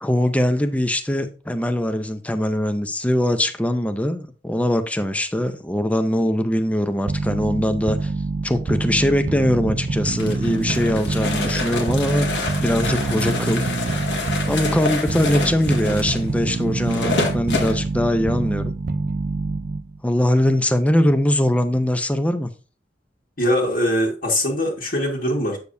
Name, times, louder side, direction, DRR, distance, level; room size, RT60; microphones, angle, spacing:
voice 1, 0.0-8.1 8.4-13.7 14.5-18.7 20.0-22.5, left 1 dB, 10° left, 0.6 m, -21 dB
sound 1, 7.1-20.0, right 3 dB, 50° right, 0.5 m, -26 dB
sound 2, 10.2-17.8, left 3 dB, 90° left, 1.8 m, -27 dB
voice 2, 23.4-25.6, equal, 55° left, 1.8 m, -22 dB
8.3 x 6.7 x 2.6 m
head